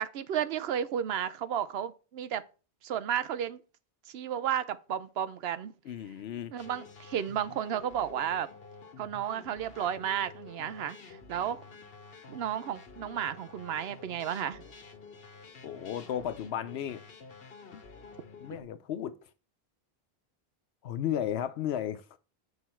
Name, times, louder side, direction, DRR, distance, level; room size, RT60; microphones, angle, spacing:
voice 1, 0.0-2.4 2.8-3.6 4.1-5.7 6.5-8.5 9.0-11.6 12.3-14.6, right 9 dB, 80° right, 0.8 m, -33 dB
voice 2, 5.9-6.5 15.6-17.0 17.7-17.8 18.4-19.2 20.8-22.0, left 10 dB, 90° left, 0.9 m, -34 dB
sound 1, 6.6-18.6, left 4 dB, 65° left, 1.2 m, -50 dB
8.1 x 5.4 x 4.3 m
omnidirectional pair, 1.0 m